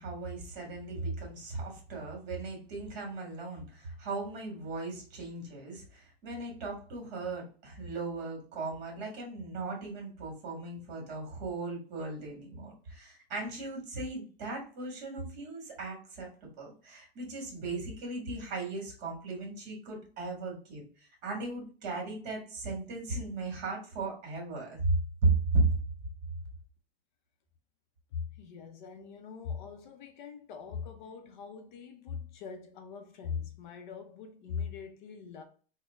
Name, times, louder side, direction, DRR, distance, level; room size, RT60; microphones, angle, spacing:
voice 1, 0.0-16.3 16.6-25.7, right 3 dB, 40° right, 1.7 m, -36 dB
voice 2, 28.1-35.4, left 6 dB, 50° left, 0.6 m, -41 dB
4.2 x 2.2 x 3.4 m
supercardioid pair, 155°, 31 cm